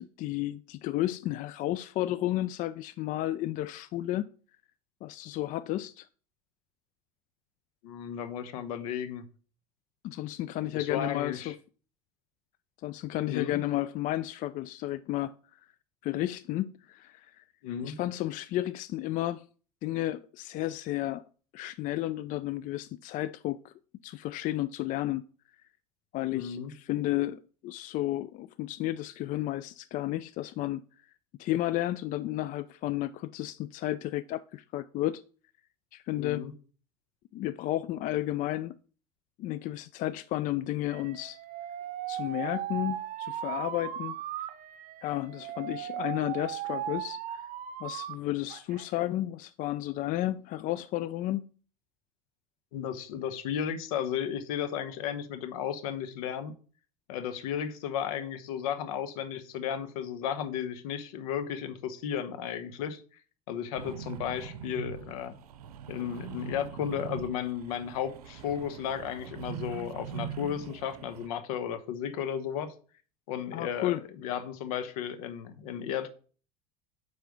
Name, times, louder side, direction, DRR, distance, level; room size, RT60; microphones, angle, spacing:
voice 1, 0.0-4.2 5.0-6.1 10.0-11.5 12.8-15.3 16.0-17.4 17.8-19.4 19.8-21.2 21.5-23.7 24.0-25.2 26.1-30.8 31.4-35.2 35.9-36.4 37.3-38.8 39.4-41.4 42.1-44.2 45.0-47.4 47.8-51.5 73.5-74.0, left 15 dB, 45° left, 0.4 m, -32 dB
voice 2, 7.8-9.2 10.7-11.5 13.3-13.6 17.6-18.0 26.3-26.7 36.2-36.5 52.7-56.5 57.1-63.0 63.5-65.3 65.9-72.7 73.3-76.1, left 9 dB, 70° left, 0.9 m, -34 dB
Alarm, 40.9-48.2 48.5-49.1, right 11 dB, 45° right, 0.7 m, -37 dB
sound 1, 63.7-71.3, right 8 dB, 80° right, 0.6 m, -42 dB
8.9 x 3.4 x 5.2 m
hypercardioid pair, 75°, 19 cm